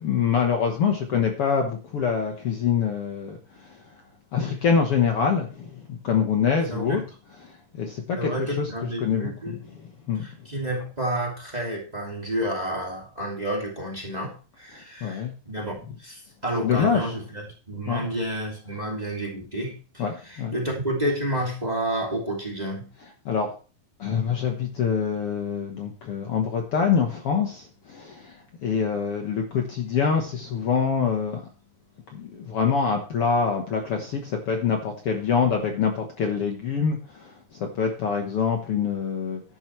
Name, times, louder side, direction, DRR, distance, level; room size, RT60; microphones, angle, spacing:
voice 1, 0.0-3.8 4.3-7.0 7.4-8.7 9.0-10.3 15.0-15.3 16.6-17.1 17.9-18.1 20.0-20.5 23.2-23.5 24.0-31.4 32.1-39.4, left 6 dB, 90° left, 3 dB, 1.2 m, -25 dB
voice 2, 6.7-7.0 8.1-9.6 10.2-15.7 16.0-17.4 17.7-22.9, right 1 dB, 15° right, -1 dB, 2.0 m, -30 dB
12.0 x 10.5 x 3.2 m, 0.37 s
omnidirectional pair, 4.6 m